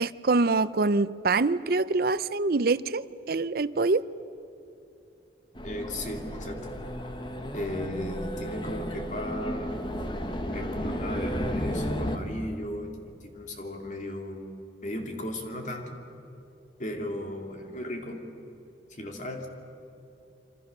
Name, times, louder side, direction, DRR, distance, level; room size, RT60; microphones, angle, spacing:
voice 1, 0.0-4.0, right 3 dB, 55° right, 15 dB, 0.6 m, -25 dB
voice 2, 5.6-6.7 7.5-9.8 10.5-13.0 13.3-14.5 14.8-16.0 16.8-18.2 18.9-19.5, left 1 dB, 45° left, 3 dB, 2.9 m, -36 dB
sound 1, 5.6-12.2, equal, 25° left, 1.5 m, -33 dB
27.0 x 25.5 x 6.8 m, 2.9 s
head